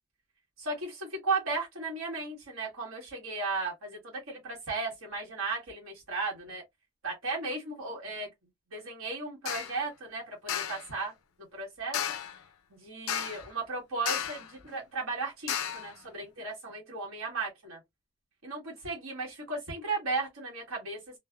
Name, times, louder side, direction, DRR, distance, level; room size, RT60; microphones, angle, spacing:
voice 1, 0.6-6.6 7.0-8.3 8.7-11.1 11.5-12.0 12.7-17.8 18.4-21.0, right 3 dB, 80° right, 1.3 m, -35 dB
sound 1, 9.5-9.8 10.5-10.9 11.9-12.4 13.1-13.5 14.1-14.5 15.5-15.9, left 9 dB, 85° left, 0.5 m, -33 dB
3.0 x 2.0 x 2.2 m
head